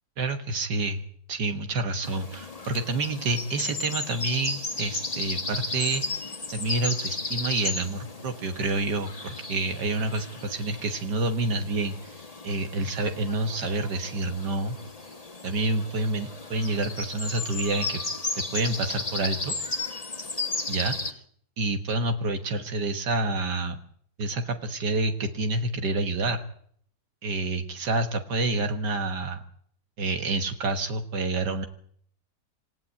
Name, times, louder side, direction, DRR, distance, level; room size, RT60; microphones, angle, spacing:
voice 1, 0.2-1.0 1.3-14.8 15.4-18.0 18.5-19.5 20.7-21.2 21.6-23.8 24.2-26.4 27.2-29.4 30.0-31.7, right 2 dB, 80° right, 6 dB, 2.0 m, -28 dB
sound 1, 2.0-21.1, left 3 dB, 20° left, 1.8 m, -35 dB
28.0 x 16.0 x 8.4 m, 0.64 s
omnidirectional pair, 1.8 m